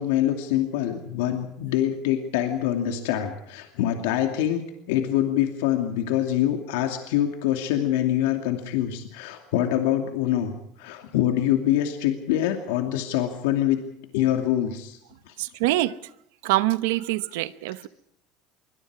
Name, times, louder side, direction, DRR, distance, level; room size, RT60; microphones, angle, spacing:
voice 1, 0.0-4.6 4.9-10.5 10.8-13.8 14.1-15.0 15.2-15.3, left 11 dB, 80° left, 2.5 m, -25 dB
voice 2, 15.4-15.9 16.4-17.9, right 17 dB, 75° right, 0.9 m, -24 dB
26.0 x 24.0 x 4.9 m
cardioid pair, 180°, 0 cm